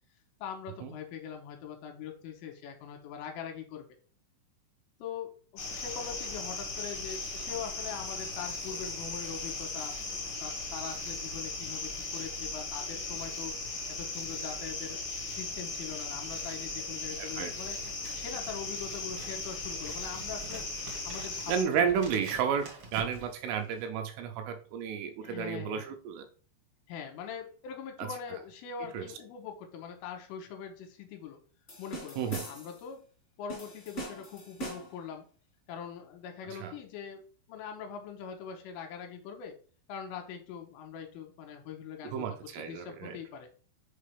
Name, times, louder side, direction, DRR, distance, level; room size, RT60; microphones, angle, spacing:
voice 1, 0.4-3.9 5.0-10.0 10.4-13.6 13.9-17.8 18.1-20.6 21.1-21.9 22.2-22.4 25.2-25.9 26.9-31.4 31.8-33.1 33.4-35.3 35.7-37.2 37.5-39.6 39.9-43.5, left 7 dB, 80° left, 3 dB, 3.3 m, -42 dB
sound 1, 5.6-21.6, left 3 dB, 60° left, 1.3 m, -38 dB
voice 2, 17.2-17.5 21.5-26.3 28.9-29.0 32.2-32.4 36.5-36.7 42.1-43.2, right 7 dB, 80° right, 5 dB, 3.1 m, -32 dB
Scissors, 17.7-24.0, right 2 dB, 60° right, 1.4 m, -48 dB
sound 2, 31.7-32.8 33.5-35.0, right 1 dB, 40° left, 1.0 m, -42 dB
7.4 x 4.6 x 3.3 m, 0.39 s
omnidirectional pair, 6.0 m